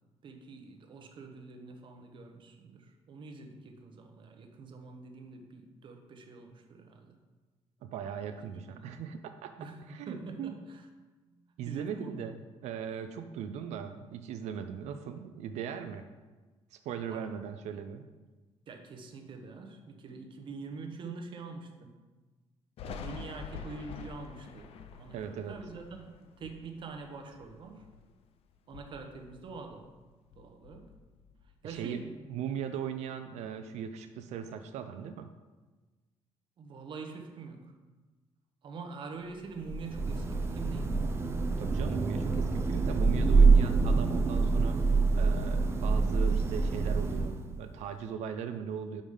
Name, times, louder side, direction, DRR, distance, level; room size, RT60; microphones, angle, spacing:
voice 1, 0.2-7.2 8.4-8.9 9.6-10.8 11.3-12.2 17.1-17.3 18.7-22.0 22.8-27.9 28.7-29.9 30.4-30.9 31.6-32.3 36.6-37.7 38.6-41.2, right 4 dB, 45° right, 4 dB, 0.8 m, -45 dB
voice 2, 7.8-9.5 9.9-10.6 11.6-12.4 12.6-16.1 16.7-18.1 25.1-25.6 31.6-32.0 32.3-35.3 41.6-44.8 45.1-49.0, right 8 dB, 85° right, 8 dB, 0.4 m, -39 dB
Thunder, 22.8-28.2 28.6-30.0 30.3-32.0, left 5 dB, 60° left, 0.4 m, -47 dB
Thunder / Rain, 39.6-47.6, right 4 dB, 25° right, 0.5 m, -26 dB
5.2 x 4.9 x 5.5 m, 1.3 s
cardioid pair, 150°, 11 cm